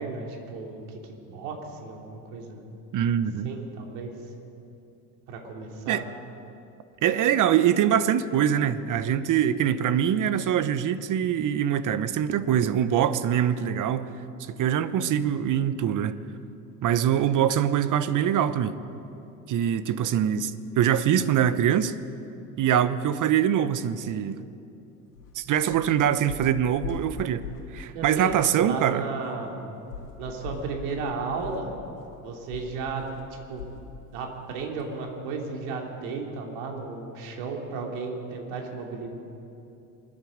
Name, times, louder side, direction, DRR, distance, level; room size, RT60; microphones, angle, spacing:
voice 1, 0.0-2.6 3.4-4.1 5.3-6.0 27.9-29.7 30.2-31.7 32.2-33.1 33.5-33.7 34.1-39.1, right 4 dB, 70° right, 1 dB, 3.0 m, -34 dB
voice 2, 2.9-3.5 5.9-6.0 7.0-14.1 14.5-16.2 16.8-18.8 19.5-21.9 22.6-24.4 25.3-27.4 27.7-29.0, right 9 dB, 45° right, 14 dB, 1.0 m, -23 dB
sound 1, 25.1-25.3 25.7-25.9 26.3-27.7 28.0-28.3 28.7-28.8 29.9-33.9 34.2-34.4 34.8-34.9, left 5 dB, 90° left, 1.9 m, -40 dB
27.5 x 9.9 x 5.2 m, 2.8 s
hypercardioid pair, 75°, 45 cm